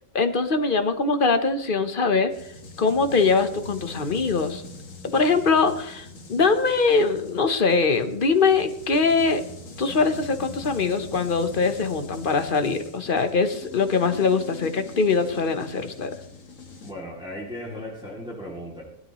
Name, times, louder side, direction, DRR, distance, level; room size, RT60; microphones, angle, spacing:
voice 1, 0.1-2.5 2.8-4.6 5.1-9.4 9.8-16.2, left 4 dB, 40° left, 9 dB, 1.1 m, -22 dB
sound 1, 2.3-16.9, left 3 dB, 75° left, 1.9 m, -42 dB
voice 2, 16.8-18.8, equal, 5° right, -4 dB, 2.7 m, -36 dB
19.0 x 12.5 x 3.1 m, 0.74 s
omnidirectional pair, 1.4 m